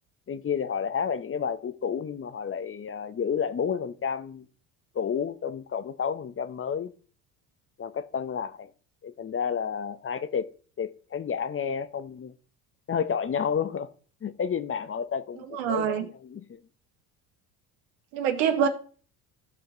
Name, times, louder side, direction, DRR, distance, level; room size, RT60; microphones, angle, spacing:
voice 1, 0.3-4.5 4.9-6.9 7.8-8.7 9.0-10.5 10.8-12.3 12.9-13.9 14.2-16.6, left 7 dB, 30° left, 0.8 m, -30 dB
voice 2, 15.5-16.1 18.1-18.7, right 8 dB, 75° right, 1.7 m, -25 dB
15.0 x 5.1 x 3.9 m
supercardioid pair, 80°, 45 cm